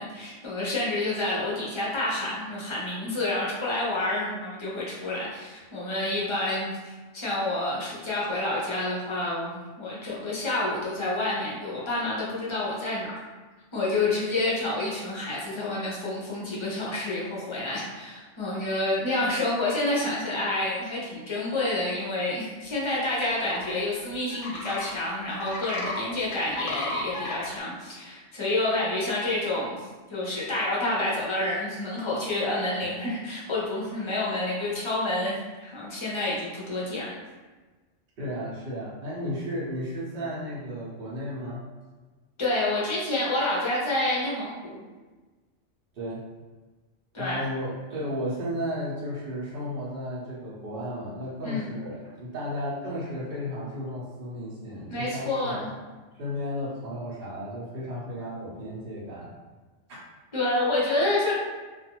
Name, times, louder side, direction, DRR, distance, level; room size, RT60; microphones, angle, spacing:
voice 1, 0.0-13.1 13.7-37.1 42.4-44.8 47.1-47.4 51.4-51.7 54.9-55.7 60.3-61.3, left 2 dB, 30° left, -6 dB, 0.6 m, -28 dB
sound 1, 23.2-23.7 24.3-24.9 25.3-26.0 26.3-27.5, left 2 dB, 70° left, 0.8 m, -34 dB
voice 2, 38.2-41.6 45.9-46.2 47.2-55.7 56.1-59.3, equal, 55° right, -7 dB, 1.0 m, -34 dB
2.5 x 2.5 x 2.9 m, 1.3 s
omnidirectional pair, 1.3 m